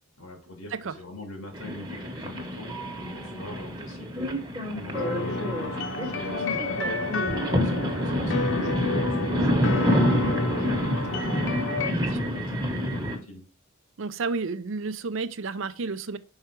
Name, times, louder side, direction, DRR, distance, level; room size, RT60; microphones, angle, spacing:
voice 1, 0.2-2.7 3.1-4.4 4.7-7.1 7.6-11.5 11.9-13.4, left 2 dB, 90° left, 1.9 m, -42 dB
sound 1, 1.5-13.2, equal, 20° right, 1.0 m, -28 dB
sound 2, 4.9-11.9, left 3 dB, 55° left, 0.9 m, -30 dB
voice 2, 14.0-16.2, right 4 dB, 60° right, 0.5 m, -31 dB
5.6 x 4.8 x 4.5 m
head